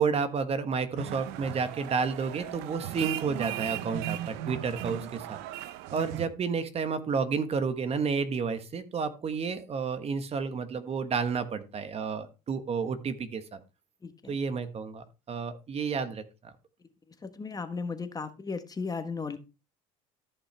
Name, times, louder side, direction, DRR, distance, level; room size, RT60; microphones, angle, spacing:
voice 1, 0.0-5.4 5.9-13.6 14.3-16.2, right 5 dB, 40° right, 10 dB, 1.3 m, -31 dB
sound 1, 1.0-6.3, right 13 dB, 80° right, 0.7 m, -37 dB
voice 2, 14.0-14.4 17.2-19.4, left 4 dB, 20° left, 9 dB, 1.3 m, -35 dB
13.5 x 5.7 x 3.3 m, 0.29 s
supercardioid pair, 95°, 17 cm